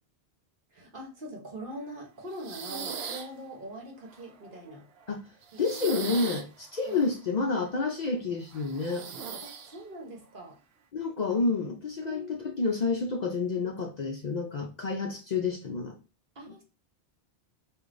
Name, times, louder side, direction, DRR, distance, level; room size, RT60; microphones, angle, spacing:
voice 1, 0.7-4.9 5.5-6.1 6.8-7.0 9.4-10.6 12.0-12.6 16.3-16.6, right 1 dB, 55° right, 1.1 m, -43 dB
sound 1, 2.3-3.3 4.1-5.1 5.4-7.2 8.5-9.8, right 6 dB, 75° right, 0.8 m, -39 dB
voice 2, 5.6-9.1 10.9-15.9, left 4 dB, 50° left, 0.5 m, -29 dB
4.8 x 2.5 x 2.5 m
omnidirectional pair, 1.1 m